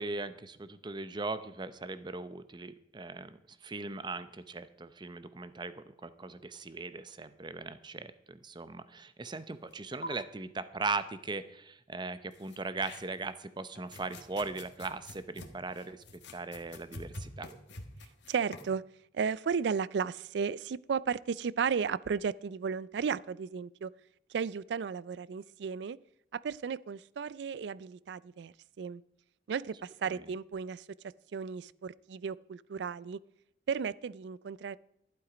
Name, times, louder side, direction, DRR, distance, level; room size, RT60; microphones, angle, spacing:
voice 1, 0.0-16.0 16.3-17.5 30.1-30.3, right 3 dB, 25° right, 0.6 m, -39 dB
sound 1, 9.7-9.8 10.0-10.1 12.3-13.3 13.8-18.7, left 1 dB, 75° left, 1.4 m, -46 dB
voice 2, 18.3-18.8 19.1-23.9 24.3-26.0 26.3-29.0 29.5-30.8 31.3-33.2 33.7-34.8, right 6 dB, 70° right, 0.4 m, -34 dB
11.5 x 11.0 x 5.0 m
head